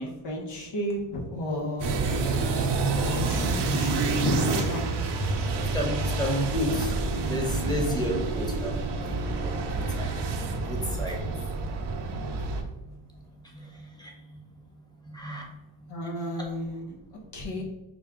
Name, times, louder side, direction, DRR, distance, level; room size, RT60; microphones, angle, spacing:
voice 1, 0.0-2.0 2.9-4.8 15.9-16.9 17.3-17.6, left 1 dB, 55° left, -1 dB, 1.1 m, -32 dB
sound 1, 1.8-12.6, right 3 dB, 55° right, 0.8 m, -28 dB
voice 2, 5.7-6.9 7.3-8.7 9.0-10.1 10.4-11.2 14.0-14.1 15.1-15.4, equal, 10° left, 0 dB, 1.1 m, -31 dB
4.4 x 2.3 x 3.6 m, 1.0 s
cardioid pair, 85°, 49 cm